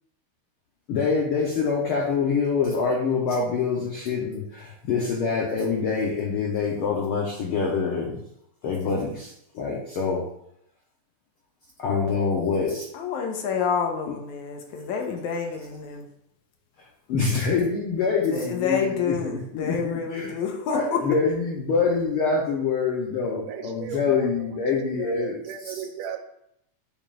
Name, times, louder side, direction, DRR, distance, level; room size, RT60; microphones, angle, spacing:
voice 1, 0.9-8.2 8.6-10.2 11.8-12.9 14.1-14.2 17.1-20.3 20.7-25.7, left 5 dB, 65° left, -2 dB, 1.5 m, -25 dB
voice 2, 12.9-16.1 18.3-21.0, left 6 dB, 85° left, 3 dB, 2.3 m, -28 dB
voice 3, 23.4-26.2, right 9 dB, 75° right, 5 dB, 1.9 m, -37 dB
10.5 x 5.4 x 2.5 m, 0.75 s
omnidirectional pair, 3.3 m